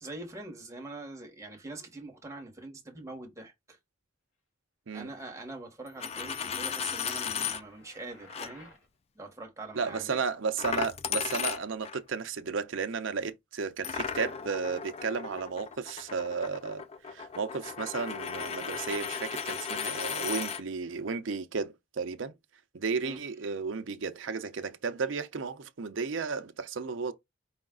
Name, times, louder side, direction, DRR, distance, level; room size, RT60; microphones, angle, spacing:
voice 1, 0.0-3.8 4.9-8.7 9.1-10.2 23.0-23.2, right 2 dB, 15° right, 1.2 m, -44 dB
Coin (dropping), 5.9-7.6 8.3-8.5 10.6-12.0 13.8-20.6, left 7 dB, 30° left, 0.3 m, -35 dB
sound 1, 6.7-8.9, left 1 dB, 70° left, 1.1 m, -55 dB
voice 2, 9.8-22.3 22.7-27.1, right 5 dB, 65° right, 0.6 m, -33 dB
5.0 x 2.4 x 3.7 m
head